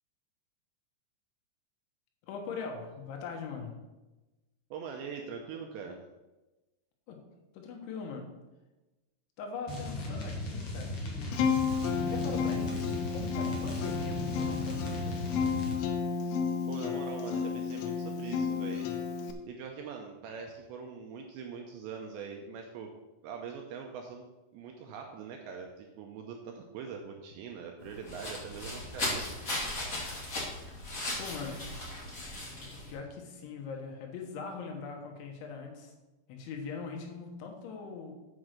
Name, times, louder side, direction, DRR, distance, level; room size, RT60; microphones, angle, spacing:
voice 1, 2.2-3.8 7.1-7.3 7.5-8.3 9.4-11.0 12.1-15.5 31.2-31.7 32.9-35.9 36.3-38.1, left 5 dB, 75° left, 2 dB, 3.6 m, -41 dB
voice 2, 4.7-6.0 16.7-18.9 19.5-22.9 23.2-24.3 24.5-29.3, right 6 dB, 75° right, 2 dB, 2.7 m, -42 dB
sound 1, 9.7-15.8, left 2 dB, 55° left, 1.8 m, -37 dB
Acoustic guitar, 11.3-19.3, left 6 dB, 90° left, 3.4 m, -32 dB
sound 2, 27.8-32.9, left 1 dB, 30° left, 1.4 m, -37 dB
7.8 x 6.1 x 6.5 m, 1.1 s
omnidirectional pair, 5.6 m